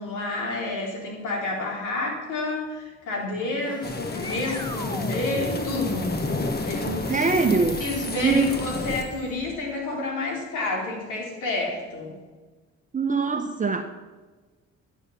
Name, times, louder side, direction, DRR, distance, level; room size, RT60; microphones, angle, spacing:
voice 1, 0.0-6.1 6.6-7.3 7.8-12.2, left 2 dB, 85° left, -1 dB, 3.8 m, -29 dB
sound 1, 3.3-9.6, equal, 15° left, 1.7 m, -36 dB
sound 2, 3.8-9.0, left 3 dB, 30° left, 1.3 m, -31 dB
voice 2, 7.1-7.8 8.2-8.5 12.9-13.8, right 4 dB, 25° right, 6 dB, 1.0 m, -22 dB
12.5 x 7.2 x 7.2 m, 1.3 s
cardioid pair, 90°, 30 cm